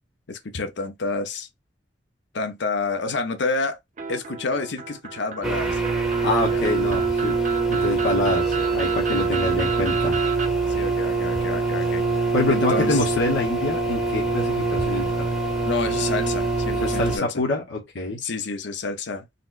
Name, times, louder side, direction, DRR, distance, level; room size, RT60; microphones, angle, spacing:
voice 1, 0.3-1.5 2.3-3.8 4.1-5.8 6.5-6.6 10.7-12.0 12.5-13.1 15.6-17.4 18.2-19.3, left 3 dB, 70° left, 0.7 m, -29 dB
sound 1, 4.0-10.5, right 7 dB, 45° right, 0.6 m, -33 dB
sound 2, 5.4-17.2, right 4 dB, ahead, 0.8 m, -24 dB
voice 2, 6.2-7.4 7.7-10.2 12.3-15.3 16.7-18.2, left 2 dB, 85° left, 1.0 m, -26 dB
4.1 x 2.1 x 2.4 m
head